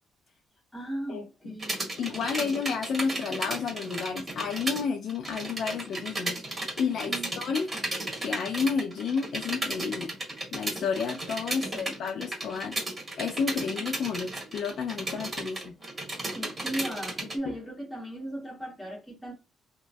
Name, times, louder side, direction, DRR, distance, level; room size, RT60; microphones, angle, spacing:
voice 1, 0.7-1.8 2.1-2.6 7.1-7.3 11.6-12.2 16.3-19.3, right 1 dB, 5° left, 1.4 m, -37 dB
sound 1, 1.6-4.8 5.1-17.4, right 2 dB, 25° right, 1.5 m, -34 dB
voice 2, 2.0-6.4 6.8-7.7 8.2-10.1 10.5-12.7 13.2-15.7, left 5 dB, 70° left, 0.4 m, -31 dB
3.0 x 2.2 x 2.6 m
cardioid pair, 90°, 0 cm